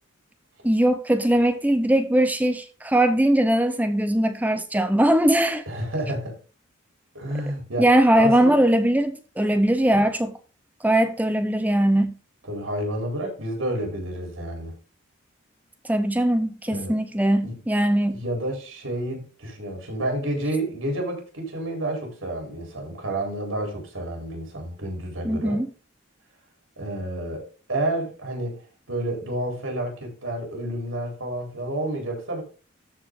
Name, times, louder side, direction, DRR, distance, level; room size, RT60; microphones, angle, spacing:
voice 1, 0.6-5.6 7.8-10.4 10.8-12.1 15.9-18.2 25.2-25.7, right 1 dB, 10° right, 0.7 m, -20 dB
voice 2, 5.7-6.3 7.1-8.6 12.5-14.7 16.7-16.9 17.4-17.5 18.1-25.6 26.8-28.6 28.9-32.4, right 1 dB, 90° right, 4.1 m, -30 dB
13.5 x 4.6 x 3.9 m
head